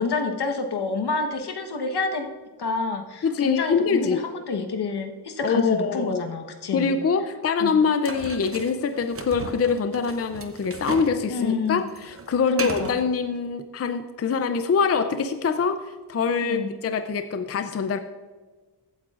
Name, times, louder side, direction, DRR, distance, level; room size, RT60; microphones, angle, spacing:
voice 1, 0.0-2.3 2.6-6.9 7.6-7.8 11.3-11.8 12.5-12.9 16.4-16.7, left 4 dB, 70° left, 5 dB, 1.2 m, -28 dB
voice 2, 3.2-4.2 5.4-6.3 6.7-18.0, left 5 dB, 35° left, 9 dB, 0.4 m, -24 dB
sound 1, 8.0-11.2 11.5-13.0, right 4 dB, 35° right, 0.7 m, -36 dB
15.0 x 8.8 x 2.4 m, 1.4 s
wide cardioid pair, 165°, 42 cm